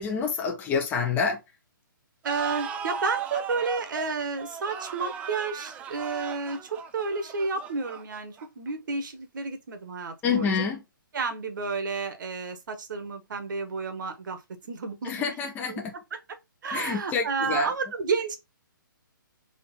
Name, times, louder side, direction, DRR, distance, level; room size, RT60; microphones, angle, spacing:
voice 1, 0.0-1.4 10.2-10.8 15.1-15.9 16.7-17.7, left 5 dB, 15° left, 0.9 m, -27 dB
sound 1, 2.2-8.7, right 6 dB, 10° right, 0.3 m, -37 dB
voice 2, 2.2-10.7 11.1-14.4 14.7-15.3 15.7-15.8 16.1-16.2 16.6-18.4, right 4 dB, 60° right, 1.4 m, -31 dB
3.9 x 3.3 x 4.1 m
hypercardioid pair, 145°, 11 cm